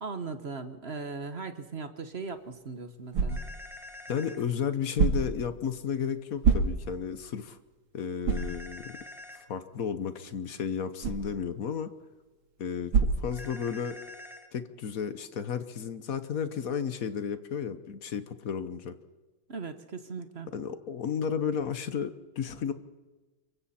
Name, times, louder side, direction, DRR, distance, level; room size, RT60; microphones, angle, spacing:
voice 1, 0.0-3.4 19.5-20.5, right 4 dB, 40° right, 9 dB, 1.1 m, -38 dB
sound 1, 2.3-14.0, right 5 dB, 70° right, 3.0 m, -32 dB
sound 2, 3.3-4.4 8.3-9.4 13.3-14.5, left 2 dB, ahead, 1.6 m, -46 dB
voice 2, 4.1-7.6 7.9-9.0 9.3-11.9 12.6-14.0 14.5-18.9 20.5-22.7, left 7 dB, 50° left, 11 dB, 1.1 m, -33 dB
26.5 x 23.0 x 4.3 m, 1.2 s
omnidirectional pair, 2.4 m